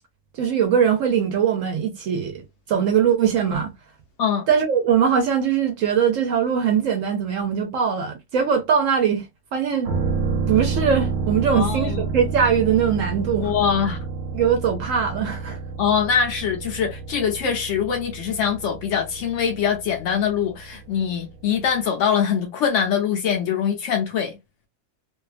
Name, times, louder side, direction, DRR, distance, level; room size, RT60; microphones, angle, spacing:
voice 1, 0.3-2.4 2.7-3.7 4.5-9.2 9.5-9.9 10.5-13.5 14.3-15.6, right 7 dB, 65° right, 0.9 m, -21 dB
sound 1, 9.9-21.4 21.7-21.8, right 4 dB, 85° right, 1.1 m, -29 dB
voice 2, 11.5-12.1 13.4-14.0 15.8-24.4, left 7 dB, 65° left, 0.8 m, -23 dB
2.6 x 2.3 x 2.3 m
omnidirectional pair, 1.5 m